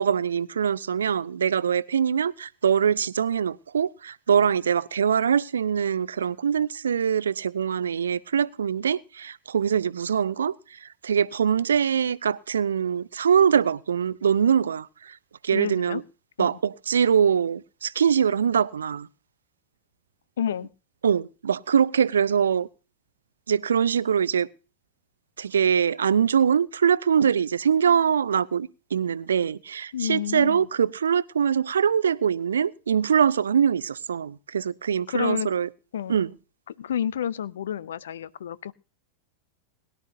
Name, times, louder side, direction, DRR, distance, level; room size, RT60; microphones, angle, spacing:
voice 1, 0.0-15.2 15.4-16.0 16.4-19.1 21.0-22.7 23.5-24.5 25.4-35.7 36.1-36.3, right 7 dB, 70° right, 0.5 m, -23 dB
voice 2, 15.5-16.0 16.4-16.6 20.4-20.7 29.9-30.7 35.1-35.5 35.9-36.2 36.8-38.7, left 9 dB, 65° left, 0.6 m, -30 dB
21.5 x 11.5 x 2.7 m
figure-of-eight pair, 90°, 0 cm